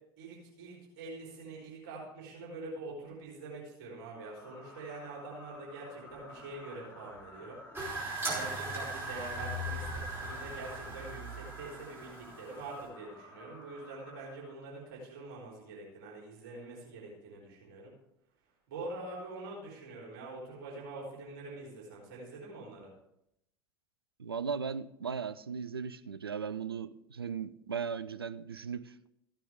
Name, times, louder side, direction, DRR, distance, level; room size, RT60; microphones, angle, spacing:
voice 1, 0.2-7.6 8.3-17.9 18.7-22.9, right 2 dB, 60° right, 4.0 m, -45 dB
sound 1, 4.2-14.9, left 2 dB, 20° left, 2.7 m, -53 dB
sound 2, 7.7-12.8, right 1 dB, 20° right, 4.8 m, -38 dB
voice 2, 24.2-29.1, right 6 dB, 85° right, 0.4 m, -37 dB
15.0 x 9.1 x 3.6 m
figure-of-eight pair, 70°, 12 cm